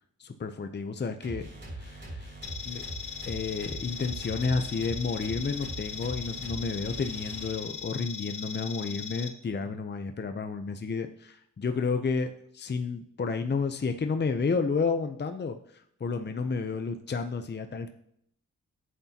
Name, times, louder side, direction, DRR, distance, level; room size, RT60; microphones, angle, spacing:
voice 1, 0.2-2.3 2.7-2.8 3.2-17.9, left 4 dB, 35° left, 7 dB, 0.7 m, -31 dB
sound 1, 1.2-7.9, right 1 dB, 40° right, 3.8 m, -41 dB
sound 2, 2.4-9.3, left 7 dB, 85° left, 1.1 m, -39 dB
11.0 x 8.2 x 2.9 m, 0.70 s
cardioid pair, 80°, 30 cm